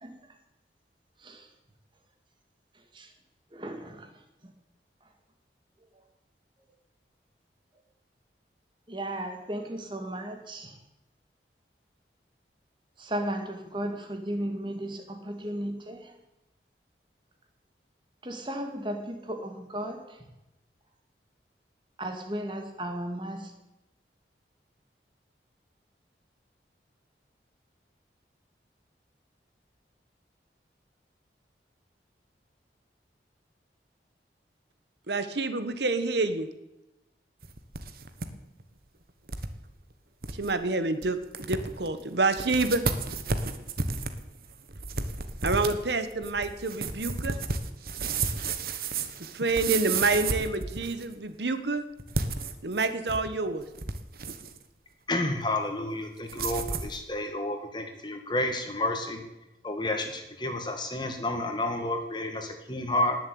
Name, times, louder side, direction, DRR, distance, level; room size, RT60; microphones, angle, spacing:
voice 1, 3.5-4.1 8.9-10.7 13.0-16.0 18.2-20.0 22.0-23.5, right 1 dB, 25° right, 5 dB, 2.2 m, -35 dB
voice 2, 35.1-36.5 40.4-41.2 41.4-42.8 45.4-47.4 49.3-51.8 52.6-53.6, right 3 dB, 75° right, 10 dB, 1.2 m, -27 dB
sound 1, 37.4-38.3 38.6-38.7 39.3-39.5 39.9-40.0 40.2-40.5 41.0-41.1 41.3-41.9 42.3-51.1 52.0-53.3 53.6-54.6 56.3-57.0, right 4 dB, 55° right, 1.3 m, -32 dB
voice 3, 55.1-59.2 59.6-63.2, left 1 dB, 25° left, 5 dB, 2.1 m, -30 dB
19.0 x 7.4 x 8.6 m, 0.95 s
head